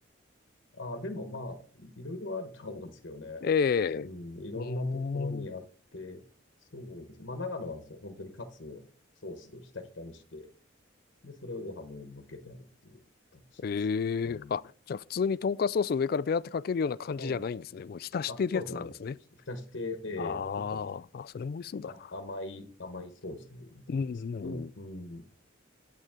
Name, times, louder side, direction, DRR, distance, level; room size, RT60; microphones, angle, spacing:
voice 1, 0.7-3.4 4.0-5.6 5.9-6.2 6.7-8.8 9.2-10.5 11.2-13.0 13.3-13.6 14.2-14.6 17.1-17.4 18.3-18.9 19.5-20.9 21.9-24.1 24.4-25.3, left 2 dB, 70° left, 1.2 m, -40 dB
voice 2, 3.4-4.1 4.5-5.5 13.6-14.6 14.9-19.2 20.2-21.9 23.9-24.7, left 6 dB, 50° left, 0.3 m, -31 dB
9.0 x 8.1 x 3.6 m
head